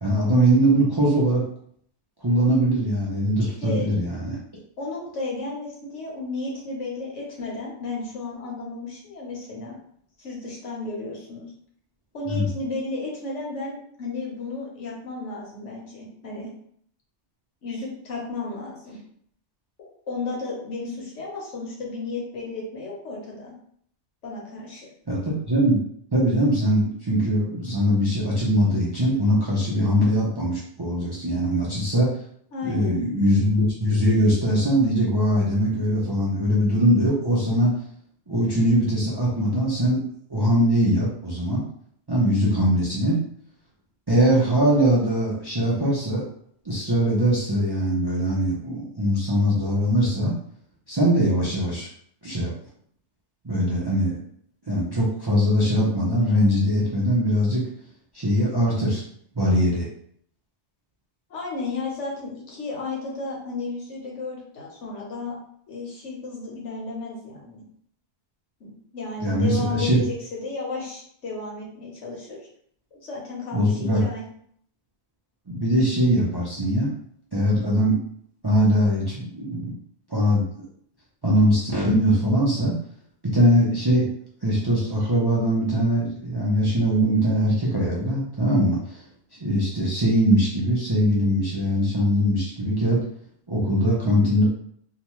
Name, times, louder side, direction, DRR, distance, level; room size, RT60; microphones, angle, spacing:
voice 1, 0.0-1.4 2.2-4.4 12.3-12.5 25.1-25.8 26.1-32.1 32.6-37.8 38.3-40.0 40.3-41.6 42.1-43.2 44.1-46.2 46.6-50.3 50.9-51.9 52.2-52.5 53.4-54.2 54.7-57.6 58.1-59.0 59.4-59.9 69.2-70.0 73.5-74.0 75.5-76.9 77.3-78.0 78.4-79.7 80.1-80.7 81.2-82.7 83.3-84.1 84.4-89.0 89.4-93.0 93.5-94.4, equal, 35° right, -6 dB, 0.4 m, -21 dB
voice 2, 3.4-3.9 4.8-9.8 10.2-11.5 12.1-16.5 17.6-19.0 20.1-23.5 24.2-24.9 32.5-33.0 61.3-65.4 65.7-67.6 68.6-72.4 72.9-74.2, left 3 dB, 85° left, -3 dB, 1.3 m, -33 dB
2.8 x 2.2 x 3.0 m, 0.64 s
omnidirectional pair, 1.2 m